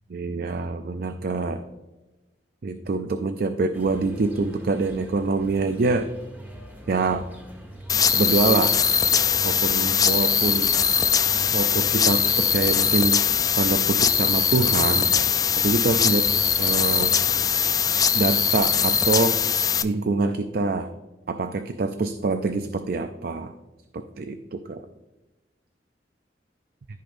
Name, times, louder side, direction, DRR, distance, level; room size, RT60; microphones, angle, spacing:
voice 1, 0.1-1.6 2.6-6.1 6.9-7.3 8.1-8.8 9.4-10.7 11.5-13.2 13.6-15.1 15.6-16.3 16.6-17.1 18.1-19.4 19.8-20.9 21.3-23.5 23.9-24.8, right 3 dB, 55° right, 8 dB, 0.4 m, -25 dB
sound 1, 3.7-17.5, equal, 10° right, 1.2 m, -42 dB
sound 2, 7.9-19.8, left 7 dB, 20° left, 0.3 m, -21 dB
14.0 x 5.1 x 2.6 m, 1.1 s
head